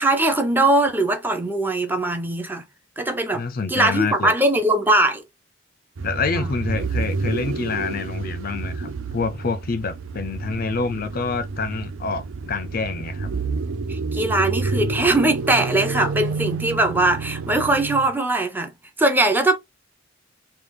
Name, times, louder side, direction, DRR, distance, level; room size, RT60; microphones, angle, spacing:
voice 1, 0.0-2.6 3.0-3.4 3.7-5.2 6.3-6.5 13.9-18.7 19.0-19.6, right 2 dB, 10° right, 0.5 m, -21 dB
voice 2, 3.3-4.3 6.0-13.3, left 4 dB, 45° left, 0.5 m, -27 dB
sound 1, 6.0-18.1, right 4 dB, 75° right, 0.5 m, -29 dB
3.3 x 2.4 x 3.6 m
head